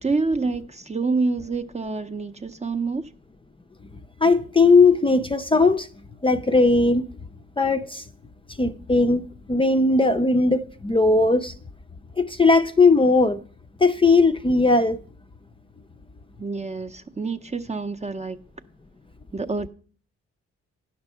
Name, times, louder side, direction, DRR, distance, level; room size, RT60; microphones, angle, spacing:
voice 1, 0.0-3.1 16.4-18.4 19.3-19.7, right 3 dB, 25° right, 0.6 m, -27 dB
voice 2, 4.2-5.9 6.2-7.1 7.6-8.0 8.6-11.5 12.2-13.4 13.8-15.0, left 3 dB, 20° left, 0.5 m, -18 dB
9.8 x 6.0 x 5.5 m
cardioid pair, 65°, 29 cm